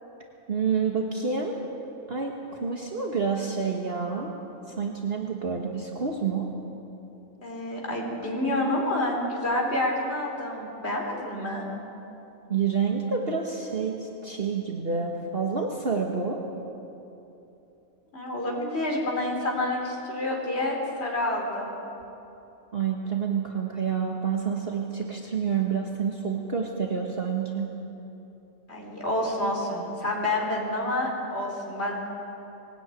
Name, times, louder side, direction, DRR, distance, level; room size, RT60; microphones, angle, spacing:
voice 1, 0.5-1.6 2.1-4.3 4.7-6.5 12.5-16.4 22.7-27.7, right 6 dB, 45° right, 0 dB, 1.6 m, -28 dB
voice 2, 7.4-11.6 18.1-21.7 28.7-32.1, left 1 dB, 45° left, -1 dB, 4.0 m, -28 dB
20.5 x 17.0 x 9.2 m, 3.0 s
omnidirectional pair, 1.5 m